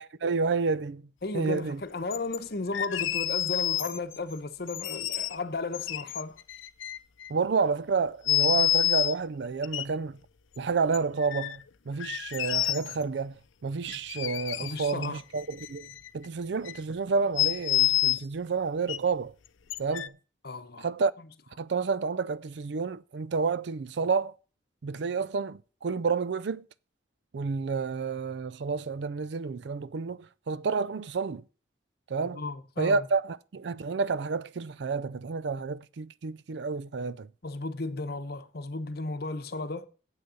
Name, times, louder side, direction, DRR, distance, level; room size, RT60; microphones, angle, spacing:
voice 1, 0.0-1.8 7.3-10.2 10.6-19.3 19.8-20.2 20.8-21.1 21.6-24.4 24.8-26.7 27.3-31.4 32.1-32.4 32.8-37.3, right 4 dB, 60° right, 0.4 m, -30 dB
voice 2, 1.2-6.4 14.6-15.2 20.4-20.9 32.3-33.0 37.4-39.9, left 3 dB, 55° left, 0.9 m, -34 dB
sound 1, 2.1-2.4 2.7-4.2 4.7-5.4 5.7-7.3 8.3-9.1 9.6-9.8 10.9-11.6 12.0-13.0 13.9-15.1 15.4-16.3 16.7-16.8 17.4-18.2 18.9-19.0 19.7-20.1, left 14 dB, 85° left, 0.5 m, -28 dB
8.2 x 6.5 x 6.9 m
head